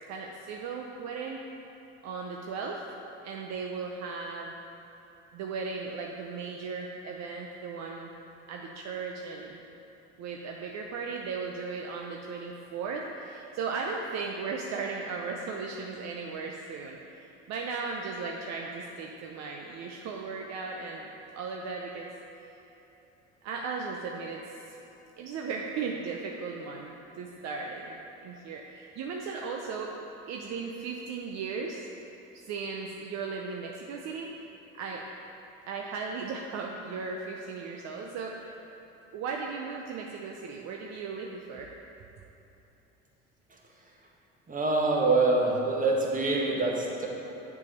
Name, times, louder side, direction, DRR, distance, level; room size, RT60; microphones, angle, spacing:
voice 1, 0.1-1.4 2.0-2.8 3.2-4.5 5.3-8.1 8.5-9.6 10.2-22.1 23.4-24.4 25.2-28.0 28.2-29.9 30.3-31.9 32.3-34.3 34.7-35.0 35.7-38.6 39.1-41.7, right 4 dB, 60° right, 0 dB, 0.6 m, -36 dB
voice 2, 44.5-47.1, right 3 dB, 25° right, -2 dB, 1.5 m, -25 dB
6.7 x 4.9 x 5.2 m, 2.9 s
supercardioid pair, 80°, 31 cm